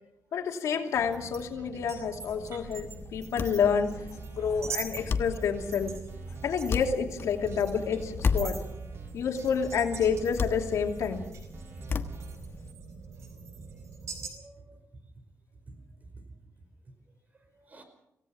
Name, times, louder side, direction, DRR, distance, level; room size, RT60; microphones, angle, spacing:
voice 1, 0.3-4.0 4.3-5.9 6.4-8.6 9.1-11.2, left 6 dB, 90° left, 3 dB, 2.8 m, -29 dB
sound 1, 0.9-14.3, right 5 dB, 75° right, 4.6 m, -44 dB
sound 2, 2.2-12.7, left 5 dB, 50° left, 1.3 m, -35 dB
sound 3, 3.6-12.4, right 4 dB, 50° right, 2.1 m, -44 dB
voice 2, 11.7-12.4 14.2-14.8 15.7-15.8 16.1-16.2 17.6-17.8, right 2 dB, 30° right, 7 dB, 4.9 m, -51 dB
26.5 x 17.0 x 5.9 m, 0.86 s
wide cardioid pair, 130°, 5 cm